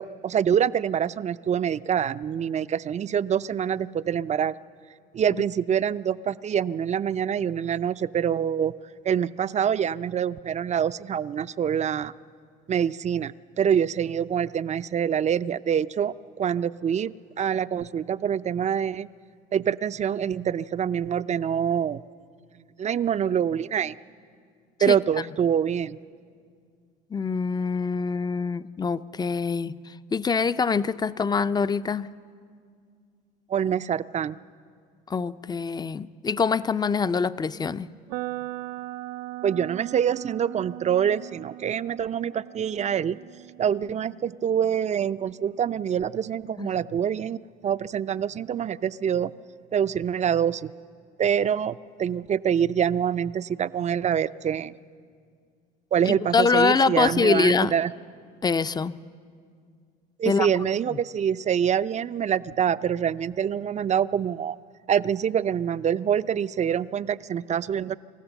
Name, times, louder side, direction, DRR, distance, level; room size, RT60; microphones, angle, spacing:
voice 1, 0.0-4.5 5.1-8.7 9.0-12.1 12.7-19.1 19.5-22.0 22.8-23.9 24.8-26.0 33.5-34.4 39.4-43.2 43.6-47.4 47.6-49.3 49.7-50.7 51.2-54.7 55.9-57.9 60.2-64.6 64.9-67.9, right 8 dB, 35° right, 16 dB, 0.5 m, -25 dB
voice 2, 27.1-32.1 35.1-37.9 46.6-46.7 56.0-57.7 58.4-58.9 60.3-60.5, left 5 dB, 20° left, 15 dB, 0.6 m, -24 dB
sound 1, 38.1-46.0, right 18 dB, 85° right, 0.5 m, -39 dB
27.0 x 15.0 x 7.1 m, 2.2 s
supercardioid pair, 80°, 20 cm